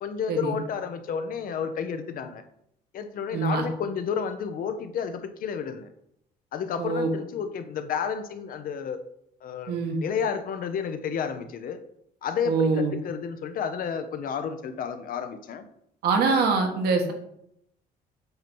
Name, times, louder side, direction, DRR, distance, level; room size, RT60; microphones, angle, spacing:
voice 1, 0.0-2.4 2.9-5.9 6.5-9.0 9.4-11.8 12.2-15.7, left 7 dB, 55° left, 9 dB, 0.7 m, -31 dB
voice 2, 3.3-3.6 6.8-7.1 9.7-10.0 12.5-12.9 16.0-17.1, right 4 dB, 70° right, 3 dB, 1.4 m, -24 dB
7.9 x 2.9 x 5.3 m, 0.75 s
cardioid pair, 110°, 17 cm